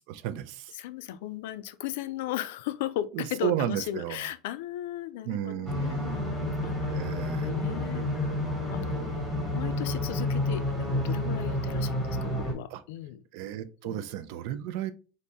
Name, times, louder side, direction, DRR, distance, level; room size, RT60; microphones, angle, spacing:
voice 1, 0.0-0.7 3.1-4.2 5.3-6.2 6.9-7.5 12.7-12.8 13.3-14.9, right 11 dB, 55° right, 0.4 m, -33 dB
voice 2, 0.7-7.1 7.4-8.3 8.7-9.3 9.5-13.2 13.8-14.0, left 12 dB, 75° left, 0.4 m, -36 dB
sound 1, 5.7-12.5, left 1 dB, ahead, 1.1 m, -30 dB
4.0 x 2.6 x 3.4 m
cardioid pair, 180°, 0 cm